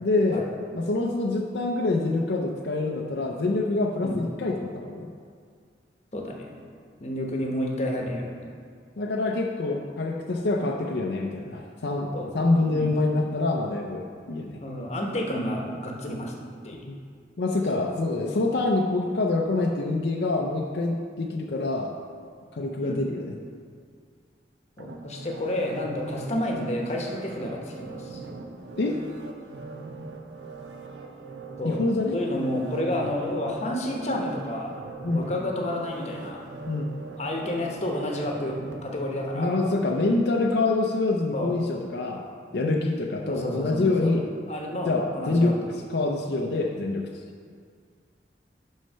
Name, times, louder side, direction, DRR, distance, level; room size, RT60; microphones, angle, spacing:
voice 1, 0.0-0.4 0.7-5.1 9.0-14.6 16.8-17.0 17.4-21.9 22.5-23.4 28.8-29.0 31.6-32.1 35.0-35.3 36.7-36.9 39.3-42.2 42.5-44.2 44.9-45.6 45.9-47.1, left 2 dB, 70° left, 0 dB, 0.5 m, -26 dB
voice 2, 6.1-6.5 7.0-8.5 12.1-12.3 12.7-12.9 14.6-16.9 17.7-17.9 22.8-23.0 24.8-28.2 31.6-31.8 32.1-36.5 37.2-39.6 41.3-41.5 43.2-44.1 44.5-45.5, left 1 dB, 40° left, 0 dB, 0.9 m, -30 dB
sound 1, 24.8-39.8 40.3-40.4, right 3 dB, 80° right, 0.7 m, -41 dB
6.2 x 5.6 x 5.5 m, 2.1 s
head